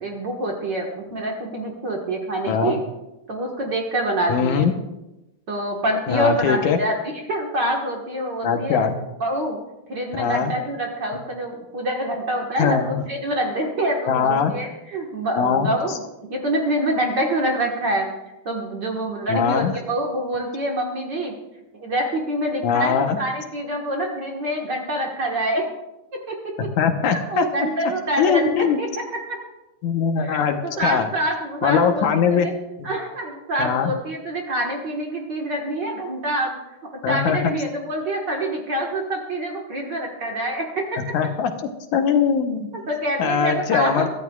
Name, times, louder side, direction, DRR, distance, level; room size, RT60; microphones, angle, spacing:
voice 1, 0.0-2.8 3.3-4.7 5.5-8.8 9.2-9.6 9.9-16.0 16.3-18.1 18.5-21.3 21.7-25.7 26.3-26.7 27.1-29.0 29.3-29.4 30.2-32.5 32.8-36.5 37.1-41.0 42.7-44.1, right 1 dB, 45° right, 0 dB, 1.7 m, -26 dB
voice 2, 4.3-4.7 6.1-6.8 8.4-8.9 10.2-10.5 12.6-13.1 14.1-14.5 15.4-15.7 19.3-19.7 22.6-23.2 26.8-27.4 28.2-28.8 29.8-31.1 31.6-32.5 32.8-32.9 33.6-33.9 37.0-37.4 41.1-41.5 41.9-42.7 43.2-44.1, left 7 dB, 80° left, 6 dB, 2.4 m, -21 dB
24.0 x 13.0 x 2.4 m, 0.97 s
omnidirectional pair, 3.4 m